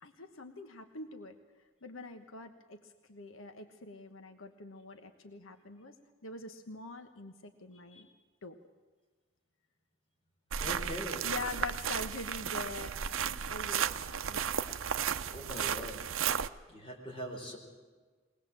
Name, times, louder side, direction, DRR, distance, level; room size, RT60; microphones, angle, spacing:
voice 1, 0.0-1.3 1.8-6.0 6.2-8.1 8.4-8.6 10.6-10.9 11.2-15.2 15.5-15.6 15.9-16.0, left 3 dB, 85° left, 7 dB, 1.2 m, -45 dB
sound 1, 10.5-16.5, right 8 dB, 80° right, 0.7 m, -34 dB
voice 2, 10.6-11.3 15.2-16.2 16.7-17.6, equal, 25° left, -1 dB, 4.9 m, -42 dB
22.0 x 19.0 x 7.6 m, 1.4 s
head